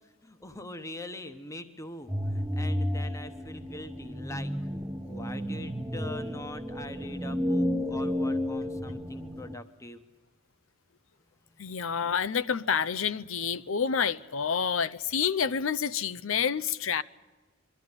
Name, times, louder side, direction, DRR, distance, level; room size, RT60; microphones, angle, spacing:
voice 1, 0.2-4.5 5.1-10.0 11.6-11.8, left 1 dB, 15° left, 1.0 m, -43 dB
sound 1, 2.1-9.5, equal, 10° right, 0.9 m, -32 dB
voice 2, 11.6-17.0, left 7 dB, 75° left, 0.6 m, -28 dB
23.0 x 13.0 x 9.6 m
head